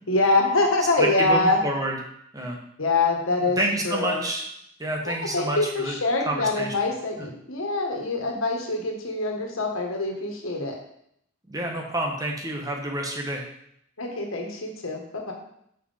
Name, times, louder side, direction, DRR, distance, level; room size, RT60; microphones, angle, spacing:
voice 1, 0.1-1.6 2.8-3.6 3.8-4.2 5.0-10.7 14.0-15.3, left 2 dB, 85° left, 2 dB, 1.7 m, -24 dB
voice 2, 1.0-2.0 2.3-2.6 3.6-4.4 4.8-5.9 6.2-6.7 7.2-7.3 11.5-13.4, right 1 dB, 15° right, 1 dB, 1.3 m, -28 dB
6.4 x 5.6 x 5.7 m, 0.72 s
head